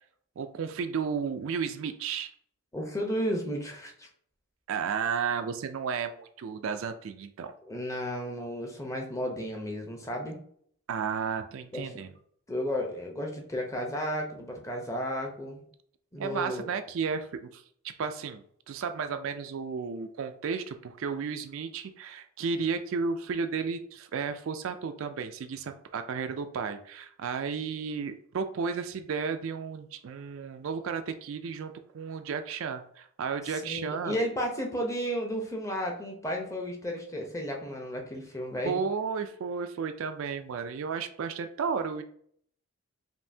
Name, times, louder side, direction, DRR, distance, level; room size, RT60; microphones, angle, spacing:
voice 1, 0.4-2.3 4.7-7.5 10.9-12.1 16.2-17.6 18.0-34.2 38.6-42.0, right 6 dB, 60° right, 8 dB, 0.3 m, -33 dB
voice 2, 2.7-4.1 7.7-10.4 11.7-11.9 12.5-15.6 16.1-16.7 33.5-38.8, equal, 15° left, 1 dB, 0.7 m, -33 dB
5.3 x 2.6 x 2.7 m, 0.63 s
head